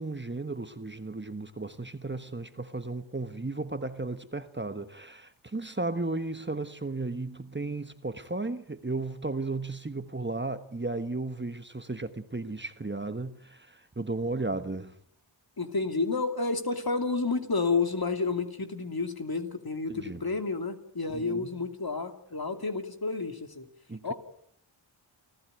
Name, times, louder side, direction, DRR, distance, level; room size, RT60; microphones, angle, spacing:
voice 1, 0.0-15.0 19.9-20.2 21.1-21.5 23.9-24.1, right 3 dB, 20° right, 1.3 m, -34 dB
voice 2, 15.6-23.7 24.0-24.1, left 4 dB, 45° left, 2.9 m, -30 dB
28.5 x 15.0 x 9.2 m
wide cardioid pair, 60°, 49 cm